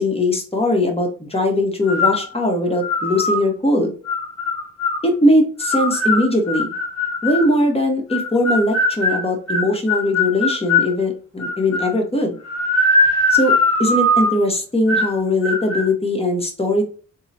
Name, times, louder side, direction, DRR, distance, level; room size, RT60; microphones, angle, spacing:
voice 1, 0.0-3.9 5.0-6.7 7.2-12.3 13.3-13.5 13.8-16.9, left 1 dB, 15° left, 1 dB, 1.0 m, -20 dB
sound 1, 1.9-2.3 2.8-3.4 4.1-5.0 5.6-7.5 8.1-10.9 11.4-12.0 12.4-14.4 14.9-15.2 15.4-15.9, left 2 dB, 50° left, 1.4 m, -20 dB
3.6 x 2.1 x 2.7 m, 0.39 s
cardioid pair, 50°, 34 cm